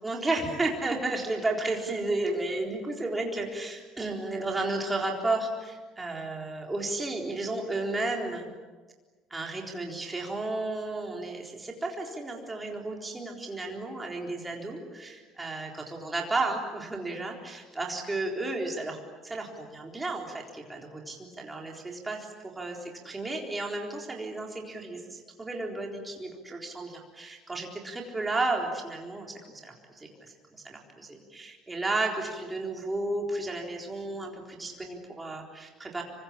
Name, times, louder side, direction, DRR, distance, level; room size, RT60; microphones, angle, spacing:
voice 1, 0.0-8.5 9.3-36.0, right 2 dB, 10° right, 0 dB, 3.9 m, -33 dB
27.0 x 24.0 x 8.7 m, 1.3 s
cardioid pair, 180°, 0 cm